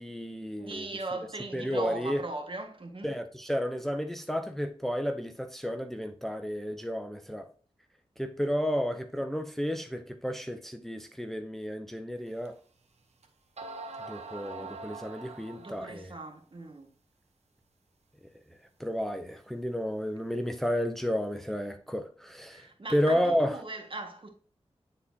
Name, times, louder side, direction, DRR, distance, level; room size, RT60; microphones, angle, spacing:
voice 1, 0.0-0.8 1.5-2.2 3.0-7.5 8.2-12.6 14.1-16.1 18.8-23.5, equal, 5° left, 0.7 m, -32 dB
voice 2, 0.6-3.1 15.6-16.9 22.5-24.3, right 2 dB, 50° right, 1.7 m, -39 dB
sound 1, 12.5-12.6 13.2-13.3 13.6-16.0, right 3 dB, 80° right, 1.0 m, -43 dB
9.5 x 4.2 x 2.8 m
wide cardioid pair, 60°, 11 cm